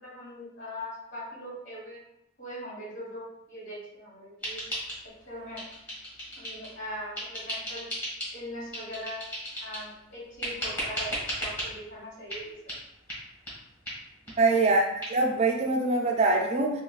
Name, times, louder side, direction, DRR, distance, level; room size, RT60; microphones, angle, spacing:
voice 1, 0.0-2.0 2.4-4.6 5.2-5.6 6.4-7.9 8.3-9.2 9.6-12.7, equal, 60° left, -5 dB, 1.5 m, -40 dB
sound 1, 4.4-5.3 5.5-6.8 7.1-8.4 8.7-9.9 10.4-11.7 12.3-12.4 12.7-12.8 13.1-13.2 13.5-13.6 13.8-14.0 14.3-14.4 14.6-14.7 15.0-15.1, equal, 10° left, 1.5 m, -35 dB
voice 2, 14.4-16.7, right 3 dB, 30° right, 1 dB, 0.4 m, -24 dB
4.5 x 2.3 x 2.3 m, 0.82 s
head